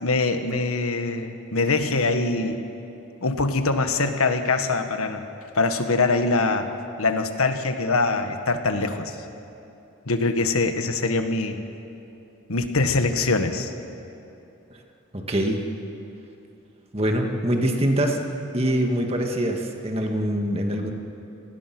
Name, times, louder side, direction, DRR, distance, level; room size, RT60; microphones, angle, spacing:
voice 1, 0.0-2.6 3.2-5.2 5.5-6.7 7.0-9.1 10.1-11.6 12.5-13.7, left 3 dB, 85° left, 7 dB, 1.5 m, -23 dB
voice 2, 15.1-15.6 16.9-18.2 18.5-20.9, right 1 dB, 25° right, 2 dB, 1.9 m, -24 dB
29.5 x 19.5 x 6.1 m, 2.8 s
head